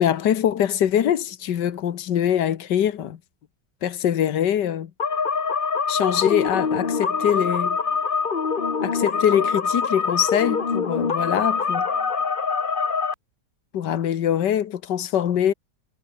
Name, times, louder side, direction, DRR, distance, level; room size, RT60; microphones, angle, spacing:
voice 1, 0.0-3.2 3.8-4.9 5.9-7.8 8.8-11.8 13.7-15.5, left 10 dB, 85° left, 1.8 m, -23 dB
sound 1, 5.0-13.1, left 5 dB, 35° left, 1.3 m, -24 dB
omnidirectional pair, 1.8 m